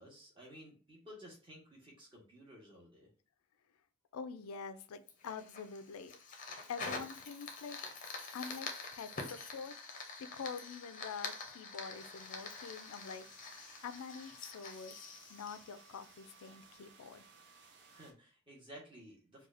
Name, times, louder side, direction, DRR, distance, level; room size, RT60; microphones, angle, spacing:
voice 1, 0.0-3.1 17.9-19.5, equal, 25° right, -3 dB, 1.2 m, -54 dB
voice 2, 4.1-6.1 6.7-7.8 8.3-9.7 10.2-13.3 13.8-15.0 15.3-17.2, left 5 dB, 90° left, 12 dB, 0.4 m, -46 dB
Fire, 5.1-16.5, left 4 dB, 40° left, 0.6 m, -46 dB
sound 1, 11.9-18.1, right 4 dB, 55° right, 0.6 m, -61 dB
4.7 x 2.3 x 2.5 m, 0.38 s
head